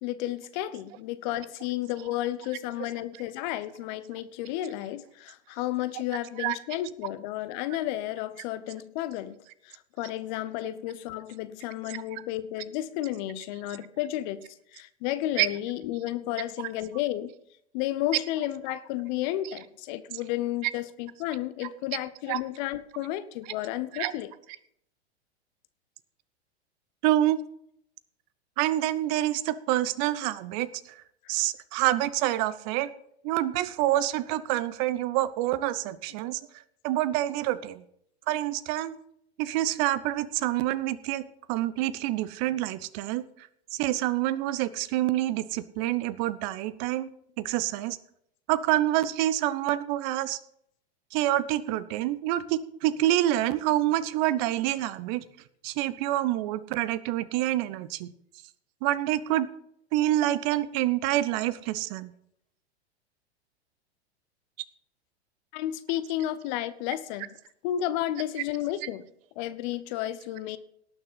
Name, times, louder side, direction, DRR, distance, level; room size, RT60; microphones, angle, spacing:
voice 1, 0.0-9.4 9.6-14.4 14.7-17.3 17.7-24.3 65.5-67.4 67.6-69.0 69.4-70.6, left 13 dB, 45° left, 13 dB, 1.0 m, -32 dB
voice 2, 11.9-12.2 15.4-15.5 22.3-22.4 23.9-24.1 27.0-27.4 28.6-31.0 31.3-32.9 33.2-36.4 36.8-37.8 38.3-39.0 39.4-43.2 43.7-47.1 47.4-48.0 48.5-50.4 51.1-55.2 55.6-58.1 58.8-59.5 59.9-62.1, right 14 dB, 40° right, 16 dB, 0.8 m, -27 dB
18.0 x 6.5 x 5.7 m, 0.71 s
figure-of-eight pair, 95°, 33 cm